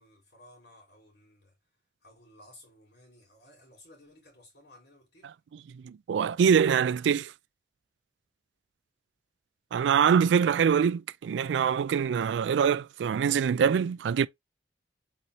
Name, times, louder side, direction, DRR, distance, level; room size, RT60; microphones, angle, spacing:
voice 1, 0.0-1.5 2.0-5.3, left 1 dB, 75° left, 3.3 m, -56 dB
voice 2, 5.7-7.3 9.7-14.3, right 7 dB, 85° right, 0.3 m, -24 dB
4.2 x 4.0 x 3.2 m
head